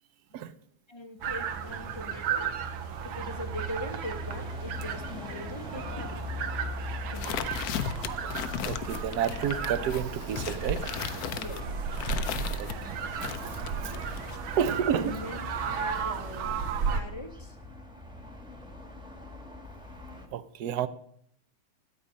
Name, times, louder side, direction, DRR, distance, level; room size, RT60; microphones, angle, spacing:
voice 1, 0.9-6.2 7.1-7.8 11.3-11.7 13.8-14.2 14.9-16.6 16.9-17.6, left 1 dB, 25° left, 7 dB, 0.5 m, -42 dB
sound 1, 1.2-20.3, left 1 dB, 5° right, 1.1 m, -41 dB
sound 2, 1.2-17.0, right 7 dB, 90° right, 1.7 m, -35 dB
sound 3, 7.1-12.8 13.2-14.4, left 9 dB, 65° left, 1.0 m, -36 dB
voice 2, 8.6-10.8 12.6-13.0 14.6-15.1 20.3-20.9, right 8 dB, 65° right, 14 dB, 1.0 m, -30 dB
13.5 x 8.4 x 5.2 m, 0.69 s
omnidirectional pair, 2.2 m